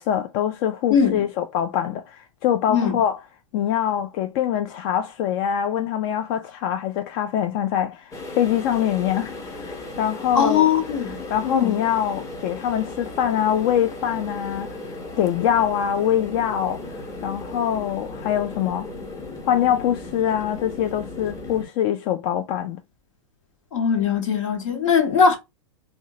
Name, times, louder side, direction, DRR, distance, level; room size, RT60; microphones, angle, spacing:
voice 1, 0.0-3.2 3.5-10.7 11.3-18.9 19.5-22.8, left 10 dB, 50° left, 0.4 m, -24 dB
voice 2, 0.9-1.2 2.7-3.0 10.3-11.8 23.7-25.4, left 6 dB, 70° left, 1.2 m, -20 dB
sound 1, 8.1-21.6, left 2 dB, 20° left, 0.9 m, -36 dB
3.6 x 2.2 x 2.7 m
hypercardioid pair, 100°, 17 cm